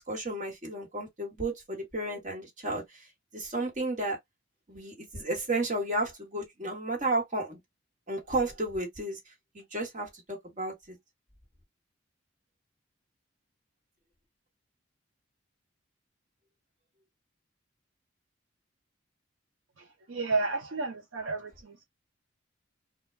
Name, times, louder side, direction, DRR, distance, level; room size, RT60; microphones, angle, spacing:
voice 1, 0.0-3.1 3.3-4.2 4.7-7.6 8.1-9.2 9.5-11.0, right 2 dB, 35° right, 1.3 m, -33 dB
voice 2, 19.8-21.8, right 3 dB, 75° right, 0.6 m, -32 dB
2.2 x 2.2 x 3.1 m
head